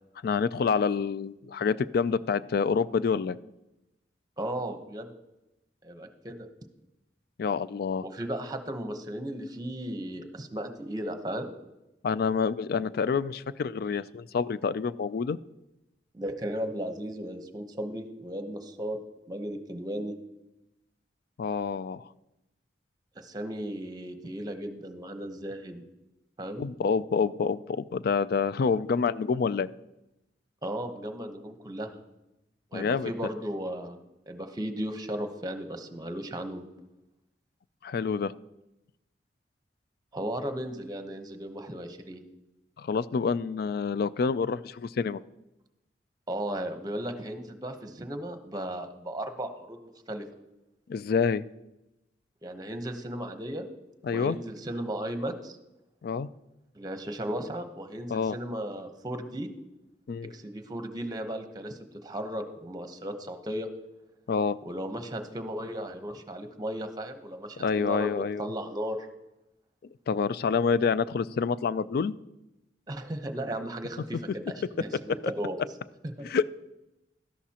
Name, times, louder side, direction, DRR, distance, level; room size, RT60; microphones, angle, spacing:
voice 1, 0.2-3.4 7.4-8.0 12.0-15.4 21.4-22.0 26.6-29.7 32.7-33.1 37.8-38.3 42.8-45.2 50.9-51.4 54.0-54.4 56.0-56.3 58.1-58.4 60.1-60.3 64.3-64.6 67.6-68.5 70.1-72.1 76.2-76.4, left 5 dB, 60° left, 17 dB, 0.3 m, -27 dB
voice 2, 4.4-5.1 5.8-6.5 8.0-11.5 16.1-19.0 19.3-20.1 23.2-25.8 26.4-26.7 30.6-32.0 32.7-34.0 34.3-36.6 40.1-42.2 46.3-50.2 52.4-53.7 54.1-55.6 56.7-59.5 60.3-63.7 64.6-69.1 72.9-75.6 76.2-76.3, right 1 dB, 20° right, 7 dB, 0.9 m, -35 dB
13.0 x 11.0 x 2.9 m, 0.95 s
head